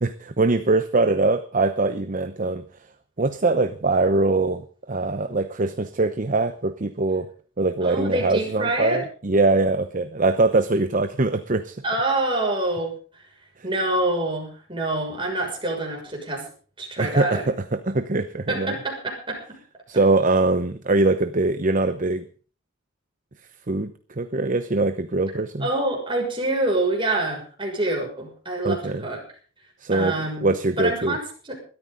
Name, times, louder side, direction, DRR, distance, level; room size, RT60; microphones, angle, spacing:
voice 1, 0.0-2.6 3.2-7.3 7.6-11.8 17.0-18.8 19.9-22.2 23.7-25.7 28.6-29.0 29.8-30.1 30.4-31.2, right 3 dB, 40° right, 10 dB, 0.9 m, -22 dB
voice 2, 7.8-9.0 11.8-13.2 13.6-16.5 16.8-17.4 18.5-19.6 25.6-29.2 29.9-30.5 30.8-31.2 31.5-31.6, right 2 dB, 25° right, 0 dB, 6.5 m, -26 dB
21.5 x 13.5 x 4.0 m, 0.40 s
head